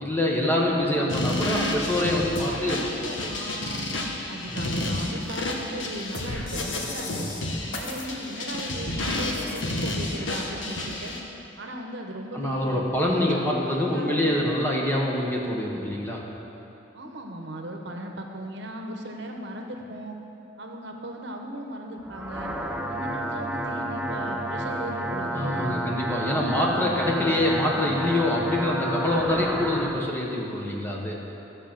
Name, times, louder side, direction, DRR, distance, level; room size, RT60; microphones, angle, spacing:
voice 1, 0.0-3.3 4.5-4.9 12.3-16.3 25.3-31.2, left 1 dB, 10° left, -3 dB, 1.3 m, -25 dB
voice 2, 0.7-1.0 2.5-3.9 4.3-7.3 7.7-11.2 11.6-12.8 13.1-14.4 16.9-20.2 20.6-22.5 22.9-25.9, right 1 dB, 70° right, 2 dB, 1.0 m, -37 dB
sound 1, 1.1-11.2, left 1 dB, 90° left, 1.3 m, -30 dB
sound 2, 22.0-30.0, right 1 dB, 5° right, 0.6 m, -31 dB
13.5 x 5.2 x 7.4 m, 3.0 s
head